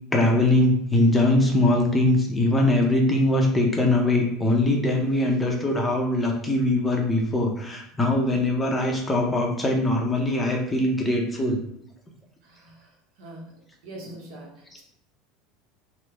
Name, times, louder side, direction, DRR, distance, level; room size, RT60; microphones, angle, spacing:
voice 1, 0.1-11.6, left 1 dB, 15° left, 0 dB, 0.5 m, -22 dB
voice 2, 12.4-13.5 13.8-14.8, right 1 dB, 70° right, 0 dB, 0.8 m, -43 dB
3.1 x 2.0 x 3.3 m, 0.70 s
supercardioid pair, 130°, 0 cm